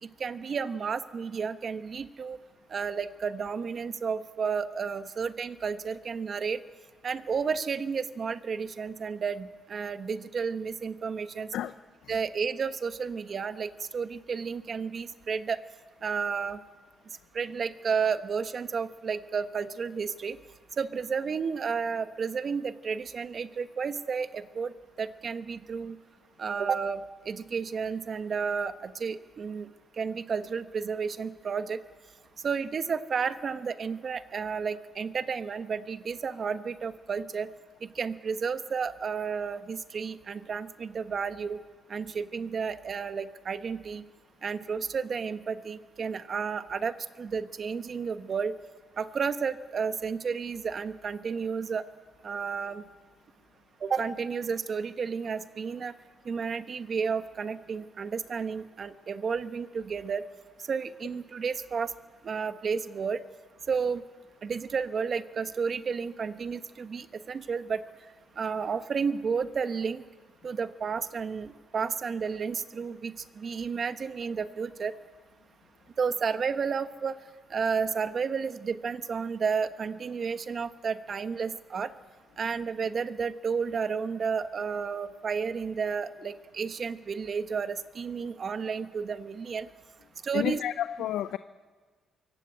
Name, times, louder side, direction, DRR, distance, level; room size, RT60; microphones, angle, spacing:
voice 1, 0.0-2.4 2.7-6.6 7.0-11.5 12.1-15.6 16.0-16.6 17.3-20.4 20.8-24.7 25.0-26.0 26.4-29.7 30.0-31.8 32.4-37.5 37.8-41.6 41.9-44.0 44.4-48.5 49.0-51.8 52.2-52.8 53.8-55.9 56.2-60.3 60.7-61.9 62.2-63.2 63.7-64.0 64.4-67.8 68.4-70.0 70.4-74.9 76.0-77.2 77.5-81.9 82.4-89.7 90.2-90.6, right 6 dB, 45° right, 10 dB, 1.2 m, -32 dB
voice 2, 90.3-91.4, left 11 dB, 80° left, 12 dB, 0.6 m, -30 dB
23.5 x 17.5 x 8.4 m, 1.4 s
cardioid pair, 90°, 0 cm